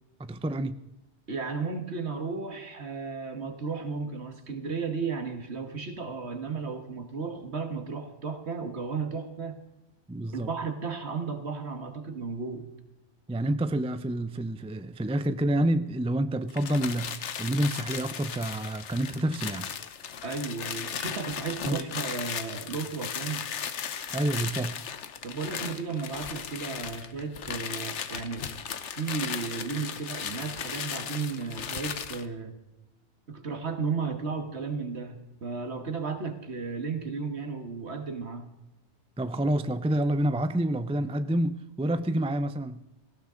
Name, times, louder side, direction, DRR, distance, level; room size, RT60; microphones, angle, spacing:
voice 1, 0.2-0.8 10.1-10.5 13.3-19.7 21.7-21.8 24.1-24.8 39.2-42.8, right 1 dB, 10° right, 0.3 m, -28 dB
voice 2, 1.3-9.6 10.3-12.7 20.2-23.5 25.2-28.5 29.0-32.6 33.3-38.5, right 4 dB, 65° right, 1.9 m, -34 dB
sound 1, 16.5-32.3, left 7 dB, 75° left, 1.2 m, -36 dB
18.0 x 16.0 x 3.9 m
omnidirectional pair, 1.2 m